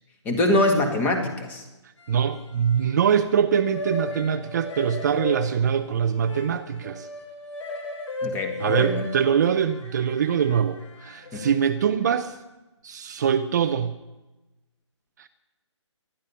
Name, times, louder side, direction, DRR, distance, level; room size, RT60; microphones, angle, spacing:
voice 1, 0.3-1.6 8.2-9.1 11.3-11.5, left 1 dB, 10° left, 4 dB, 1.8 m, -24 dB
sound 1, 2.0-3.1 3.4-11.5, left 2 dB, 70° left, 4.7 m, -36 dB
voice 2, 2.1-7.1 8.6-12.3 12.8-13.9 15.2-15.3, right 8 dB, 35° right, 8 dB, 0.7 m, -23 dB
21.0 x 11.5 x 5.7 m, 1.1 s
figure-of-eight pair, 150°, 16 cm